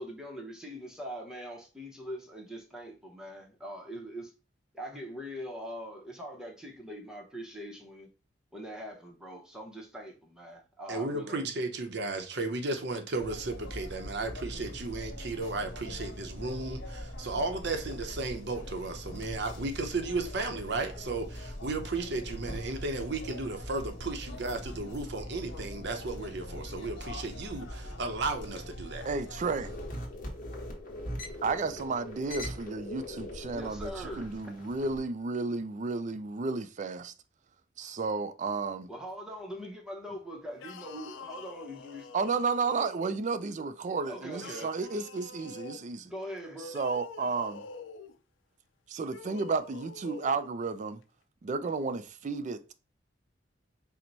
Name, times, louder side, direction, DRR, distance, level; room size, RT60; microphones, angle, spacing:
voice 1, 0.0-4.3 4.7-8.1 8.5-11.4 33.5-34.3 38.9-42.1 44.1-44.7 46.0-46.7, equal, 5° right, 0.8 m, -42 dB
voice 2, 10.9-29.1, right 3 dB, 65° right, 0.7 m, -34 dB
sound 1, 13.2-29.9, left 1 dB, 70° left, 1.3 m, -42 dB
voice 3, 29.1-29.7 31.4-37.1 37.8-38.9 42.1-46.1 46.7-47.6 48.9-51.0 51.4-52.7, right 4 dB, 40° right, 0.4 m, -32 dB
sound 2, 29.6-35.0, left 1 dB, 45° left, 1.1 m, -41 dB
sound 3, 40.5-43.3 44.3-45.9 46.6-48.2 49.0-50.5, left 5 dB, 85° left, 0.4 m, -46 dB
4.4 x 2.1 x 3.9 m
head